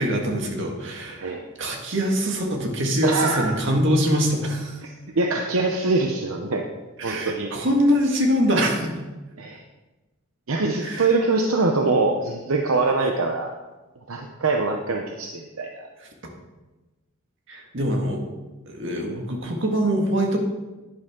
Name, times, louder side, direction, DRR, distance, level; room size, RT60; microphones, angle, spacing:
voice 1, 0.0-4.8 7.0-9.0 10.8-11.1 17.5-18.2 18.7-20.4, equal, 60° right, 1 dB, 1.9 m, -23 dB
voice 2, 3.0-3.6 4.8-4.9 5.2-6.6 7.0-7.5 9.4-9.6 10.5-13.5 14.1-15.9, right 3 dB, 80° right, 3 dB, 0.8 m, -23 dB
11.0 x 10.0 x 3.7 m, 1.1 s
head